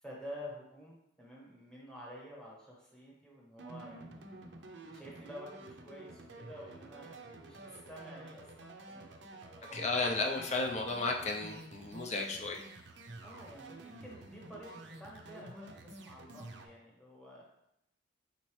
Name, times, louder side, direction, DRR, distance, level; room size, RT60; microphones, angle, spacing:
voice 1, 0.0-4.2 4.9-10.3 13.2-17.4, equal, 5° left, -5 dB, 1.0 m, -50 dB
sound 1, 3.6-16.7, right 2 dB, 60° right, 0.5 m, -50 dB
voice 2, 9.7-12.6, left 3 dB, 35° left, 1 dB, 0.5 m, -33 dB
4.3 x 4.0 x 3.1 m, 0.80 s
head